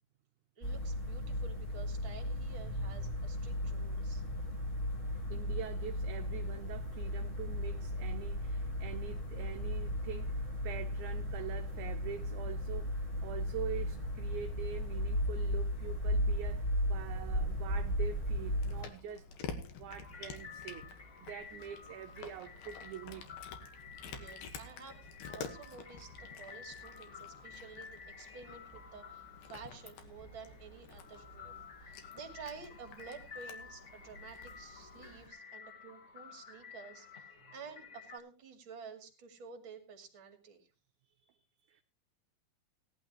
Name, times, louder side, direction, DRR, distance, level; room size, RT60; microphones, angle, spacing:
sound 1, 0.6-18.8, equal, 20° left, 1.6 m, -35 dB
voice 1, 0.6-4.2 24.0-25.0 25.3-28.6 28.9-31.5 31.8-40.7, right 5 dB, 40° right, 2.6 m, -51 dB
voice 2, 5.3-23.3 27.3-27.4 41.2-41.8, right 8 dB, 75° right, 1.9 m, -45 dB
Cat, 18.2-35.3, left 5 dB, 80° left, 3.3 m, -50 dB
sound 2, 20.0-38.2, left 6 dB, 40° left, 1.0 m, -52 dB
17.5 x 11.5 x 3.0 m
omnidirectional pair, 4.2 m